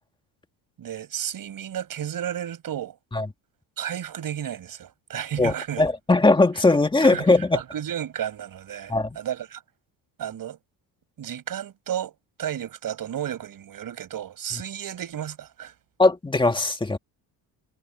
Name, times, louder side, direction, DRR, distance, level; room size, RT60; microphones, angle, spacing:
voice 1, 0.8-3.0 3.8-5.8 7.0-7.3 7.5-9.6 10.2-10.6 11.2-15.7, right 10 dB, 50° right, 6.6 m, -32 dB
voice 2, 5.4-7.6 8.9-9.2 16.0-17.0, left 2 dB, 10° left, 1.8 m, -20 dB
cardioid pair, 155°, 44 cm